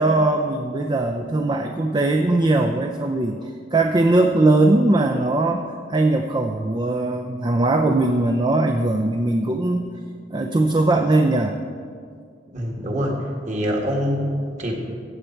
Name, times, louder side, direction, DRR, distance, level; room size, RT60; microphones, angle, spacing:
voice 1, 0.0-9.9 10.3-11.6, right 2 dB, 25° right, 4 dB, 0.5 m, -20 dB
voice 2, 12.5-13.2 13.5-14.7, equal, 40° right, 0 dB, 1.8 m, -24 dB
14.5 x 8.4 x 4.5 m, 2.2 s
head